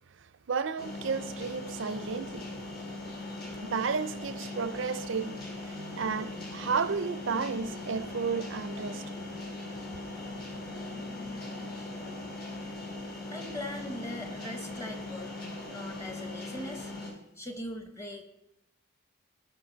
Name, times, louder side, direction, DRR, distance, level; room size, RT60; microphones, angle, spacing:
voice 1, 0.2-2.5 3.6-9.1, right 5 dB, 65° right, 0.5 m, -33 dB
sound 1, 0.8-17.1, left 2 dB, 45° left, 2.3 m, -40 dB
voice 2, 13.0-15.3 15.7-18.2, left 1 dB, 15° left, 1.1 m, -41 dB
16.5 x 5.6 x 3.9 m
head